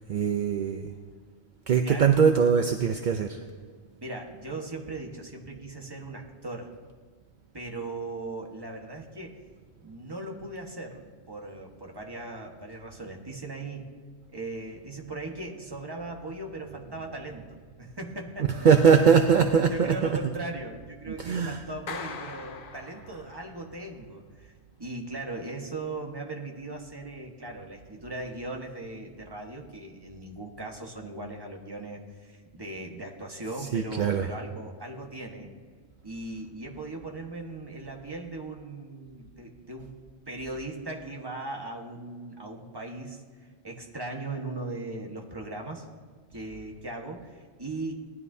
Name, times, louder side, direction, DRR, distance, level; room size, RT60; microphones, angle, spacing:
voice 1, 0.1-0.9 1.7-3.4 18.6-19.9 21.2-21.6 33.7-34.3, right 6 dB, 55° right, 6 dB, 0.6 m, -21 dB
voice 2, 1.8-2.2 4.0-6.7 7.5-9.4 9.8-14.0 14.3-18.5 19.7-35.5 36.0-39.9 40.3-45.9 46.3-48.0, right 2 dB, 20° right, 1 dB, 1.4 m, -38 dB
Clapping, 21.9-23.6, left 5 dB, 50° left, 0.8 m, -41 dB
19.0 x 12.5 x 2.7 m, 1.5 s
omnidirectional pair, 1.3 m